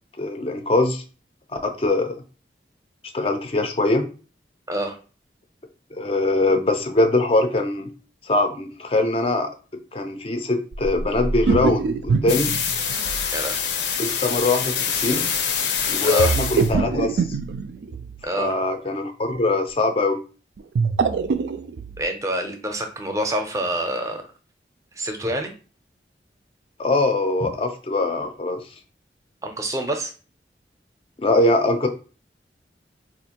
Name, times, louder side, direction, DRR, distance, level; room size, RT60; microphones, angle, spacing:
voice 1, 0.2-1.0 1.6-2.2 3.1-4.0 5.9-7.9 8.2-9.5 9.9-12.5 14.0-15.2 15.9-17.4 18.4-20.2 26.8-28.6 31.2-31.9, left 2 dB, 30° left, 6 dB, 0.4 m, -22 dB
sound 1, 10.7-13.5 16.2-18.2 20.6-22.0, right 4 dB, 80° right, 0.3 m, -24 dB
sound 2, 12.3-16.7, left 7 dB, 75° left, 0.6 m, -25 dB
voice 2, 18.2-18.6 22.0-24.2 24.9-25.5 27.4-27.5 29.4-30.1, right 1 dB, 20° right, 5 dB, 0.5 m, -27 dB
4.3 x 2.5 x 2.8 m, 0.36 s
head